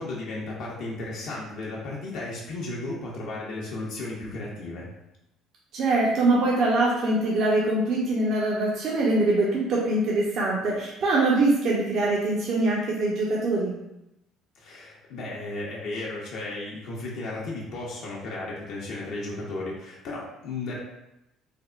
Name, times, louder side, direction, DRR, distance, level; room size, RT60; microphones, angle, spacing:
voice 1, 0.0-4.9 14.5-20.8, left 2 dB, 70° left, -4 dB, 0.6 m, -34 dB
voice 2, 5.7-13.7, right 2 dB, 60° right, -4 dB, 0.6 m, -23 dB
3.4 x 2.0 x 2.4 m, 0.87 s
cardioid pair, 95°, 0 cm